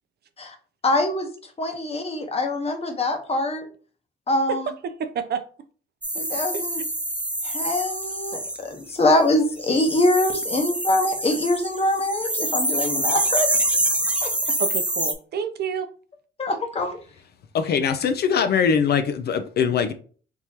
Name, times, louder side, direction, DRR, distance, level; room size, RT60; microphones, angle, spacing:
voice 1, 0.8-1.3 1.6-3.7 4.3-4.7 6.1-6.8 7.4-13.5 14.2-14.3 16.4-17.0, left 1 dB, 30° left, 0.9 m, -24 dB
voice 2, 4.5-5.4 6.5-6.6 14.6-15.9, right 7 dB, 55° right, 0.5 m, -29 dB
sound 1, 6.0-8.6 9.6-15.1, right 1 dB, 5° right, 0.6 m, -26 dB
voice 3, 17.5-19.9, left 6 dB, 55° left, 0.4 m, -22 dB
3.6 x 2.9 x 2.8 m
cardioid pair, 90°, 20 cm